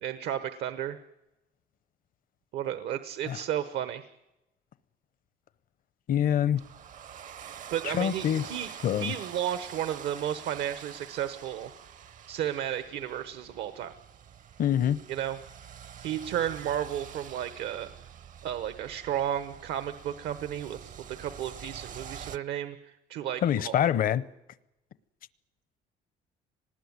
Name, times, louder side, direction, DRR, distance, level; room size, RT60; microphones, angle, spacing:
voice 1, 0.0-1.0 2.5-4.1 7.7-8.7 9.0-11.7 12.3-13.9 15.1-15.4 16.0-17.9 18.4-23.9, right 10 dB, 75° right, 1.1 m, -33 dB
voice 2, 6.1-6.6 7.8-8.5 8.8-9.1 14.6-15.0 23.4-24.2, left 10 dB, 55° left, 0.8 m, -25 dB
sound 1, 6.6-22.4, right 8 dB, 50° right, 0.8 m, -46 dB
23.5 x 19.5 x 9.6 m
cardioid pair, 110°, 17 cm